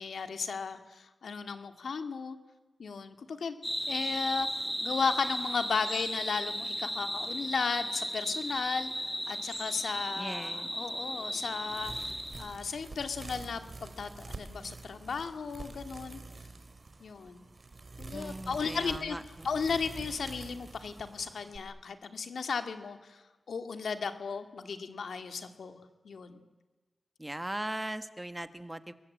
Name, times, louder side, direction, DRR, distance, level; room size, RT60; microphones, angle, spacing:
voice 1, 0.0-2.4 2.8-3.5 3.9-4.5 4.8-8.9 9.3-16.2 17.0-17.5 18.0-19.2 19.4-23.2 23.5-25.8 26.0-26.4, left 5 dB, 90° left, 8 dB, 2.4 m, -35 dB
sound 1, 3.6-12.5, equal, ahead, 3.4 m, -35 dB
voice 2, 10.2-10.7 18.1-19.5 27.2-28.9, right 1 dB, 15° right, 11 dB, 1.6 m, -39 dB
sound 2, 11.7-21.6, right 3 dB, 45° right, 3.6 m, -47 dB
29.0 x 22.5 x 8.9 m, 1.2 s
wide cardioid pair, 80°, 0 cm